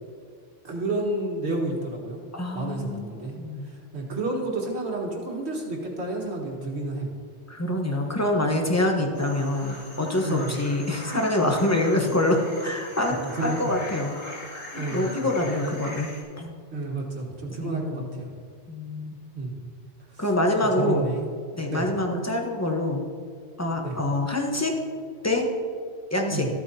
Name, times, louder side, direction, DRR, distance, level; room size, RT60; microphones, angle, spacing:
voice 1, 0.6-2.2 2.5-3.4 3.6-7.1 10.2-10.6 13.3-13.6 14.7-15.3 16.7-18.3 19.3-19.6 20.1-20.2 20.6-21.3 21.7-21.9 23.8-24.0 26.3-26.5, right 2 dB, 65° right, -1 dB, 1.8 m, -30 dB
voice 2, 2.3-3.7 7.5-14.4 14.7-16.1 16.4-16.5 17.6-18.2 18.7-19.2 20.2-21.1 21.6-23.0 23.6-24.8 25.2-25.5 26.1-26.5, left 1 dB, 15° left, 1 dB, 1.0 m, -26 dB
sound 1, 9.2-16.2, left 1 dB, 70° left, 2.5 m, -41 dB
13.5 x 8.5 x 2.8 m, 2.1 s
omnidirectional pair, 1.2 m